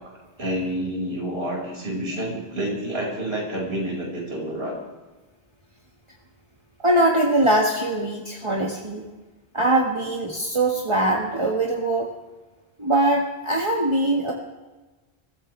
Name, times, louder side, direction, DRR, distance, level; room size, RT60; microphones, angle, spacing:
voice 1, 0.4-4.8, right 1 dB, 80° right, -2 dB, 6.0 m, -28 dB
voice 2, 6.8-9.1 9.5-12.1 12.8-14.3, right 1 dB, 30° right, -2 dB, 1.8 m, -22 dB
24.5 x 15.0 x 3.4 m, 1.2 s
omnidirectional pair, 1.0 m